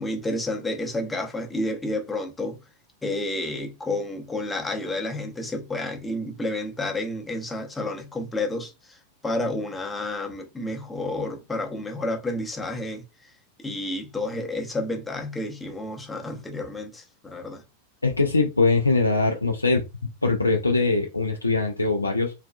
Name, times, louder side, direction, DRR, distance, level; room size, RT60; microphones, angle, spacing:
voice 1, 0.0-2.6 3.0-9.0 9.2-13.3 13.6-17.6, left 2 dB, 10° left, 0.7 m, -30 dB
voice 2, 18.0-19.8 20.2-22.3, left 3 dB, 80° left, 0.3 m, -22 dB
3.3 x 2.3 x 2.2 m
figure-of-eight pair, 90°, 0 cm